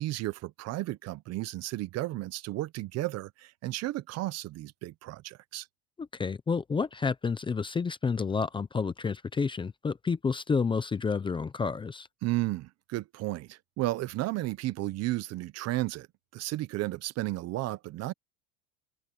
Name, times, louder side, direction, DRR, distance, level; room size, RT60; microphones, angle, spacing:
voice 1, 0.0-5.7 12.2-16.1 16.3-18.1, right 17 dB, 45° right, 0.9 m, -33 dB
voice 2, 6.0-12.1, left 5 dB, 15° left, 0.7 m, -30 dB
open air
cardioid pair, 145°, 37 cm